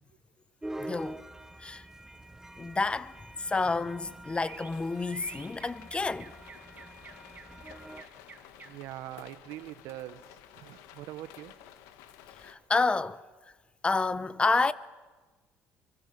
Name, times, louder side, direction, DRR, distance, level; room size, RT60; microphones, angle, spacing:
sound 1, 0.6-8.0, right 1 dB, 10° right, 1.1 m, -45 dB
voice 1, 0.8-1.2 1.6-1.9 2.6-3.1 3.4-6.3 12.4-13.2 13.8-14.7, left 3 dB, 20° left, 0.8 m, -29 dB
sound 2, 3.4-9.0, right 5 dB, 35° right, 2.2 m, -51 dB
sound 3, 4.5-12.6, left 10 dB, 90° left, 1.5 m, -53 dB
voice 2, 8.6-11.5, right 14 dB, 85° right, 1.2 m, -43 dB
24.5 x 24.5 x 6.8 m
cardioid pair, 110°, 5 cm